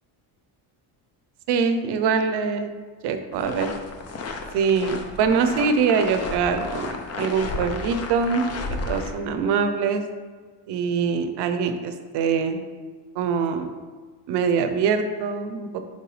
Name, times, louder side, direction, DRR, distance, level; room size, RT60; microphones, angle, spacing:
voice 1, 1.5-2.7 3.0-3.7 4.5-8.4 8.7-10.0 10.7-12.6 13.2-13.7 14.3-15.7, right 5 dB, 60° right, 8 dB, 0.7 m, -23 dB
sound 1, 3.3-9.1, left 3 dB, 35° left, 0.5 m, -33 dB
6.9 x 4.4 x 3.2 m, 1.5 s
cardioid pair, 170°, 46 cm